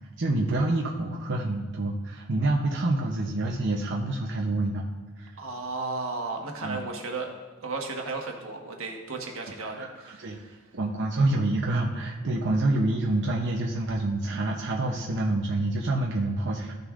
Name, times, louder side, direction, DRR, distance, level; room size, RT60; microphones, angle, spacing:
voice 1, 0.2-4.9 5.2-5.3 6.6-6.8 9.8-9.9 10.2-10.4 10.7-16.7, right 2 dB, 60° right, -1 dB, 0.7 m, -27 dB
voice 2, 5.4-7.3 7.6-10.6, right 3 dB, 90° right, 1 dB, 1.3 m, -34 dB
14.5 x 6.6 x 2.5 m, 1.3 s
head